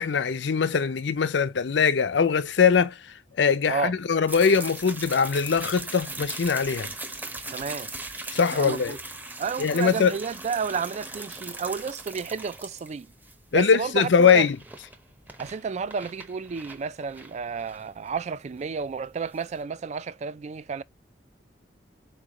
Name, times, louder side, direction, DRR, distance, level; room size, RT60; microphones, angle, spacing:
voice 1, 0.0-3.0 3.4-6.9 8.3-9.0 9.6-10.2 13.5-14.6, left 6 dB, 75° left, 0.5 m, -22 dB
sound 1, 4.3-19.6, right 2 dB, 10° right, 0.7 m, -40 dB
voice 2, 7.5-7.9 8.5-9.0 9.4-13.1 13.5-14.1 14.3-14.5 15.4-20.8, right 5 dB, 40° right, 0.3 m, -31 dB
4.5 x 3.2 x 3.7 m
head